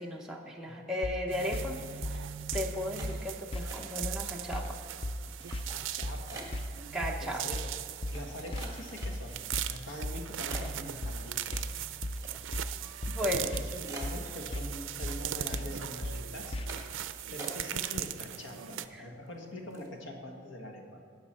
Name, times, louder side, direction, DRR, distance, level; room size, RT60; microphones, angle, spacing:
voice 1, 0.0-1.8 2.1-2.2 2.5-4.8 6.9-7.4 13.1-13.6 18.7-19.1, left 1 dB, 5° right, -1 dB, 0.7 m, -35 dB
sound 1, 1.0-16.9, left 1 dB, 25° left, 0.3 m, -38 dB
sound 2, 1.3-18.9, right 11 dB, 80° right, 0.4 m, -40 dB
sound 3, 3.0-4.2 4.5-4.9 5.4-6.7 7.4-7.5 8.0-9.5 10.0-10.1 10.5-12.7 13.0-13.1 13.4-13.5 13.9-14.9 15.2-15.7 16.0-16.2 16.7-17.0 17.4-18.0 18.3-18.9 19.3-19.4 19.7-20.0, right 3 dB, 20° right, 1.5 m, -47 dB
voice 2, 5.7-6.5 7.2-7.7 8.1-9.4 9.7-11.7 13.5-16.6 17.3-21.0, left 1 dB, 80° left, 2 dB, 1.5 m, -44 dB
18.0 x 6.1 x 4.3 m, 2.6 s
head